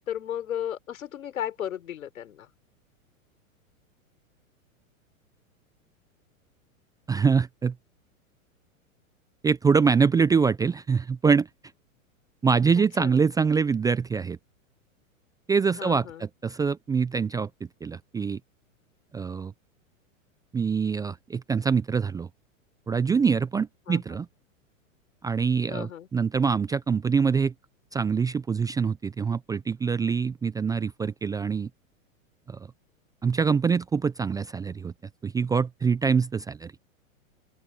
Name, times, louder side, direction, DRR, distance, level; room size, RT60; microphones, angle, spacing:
voice 1, 0.1-2.5 12.8-13.2 15.8-16.2 23.9-24.0 25.7-26.1, left 10 dB, 80° left, 4.0 m, -34 dB
voice 2, 7.1-7.7 9.4-11.5 12.4-14.4 15.5-17.5 17.8-18.4 19.1-19.5 20.5-22.3 22.9-24.3 25.2-27.5 27.9-31.7 32.5-32.7 33.2-34.9 35.2-36.7, right 5 dB, 10° right, 0.5 m, -24 dB
open air
hypercardioid pair, 115°, 41 cm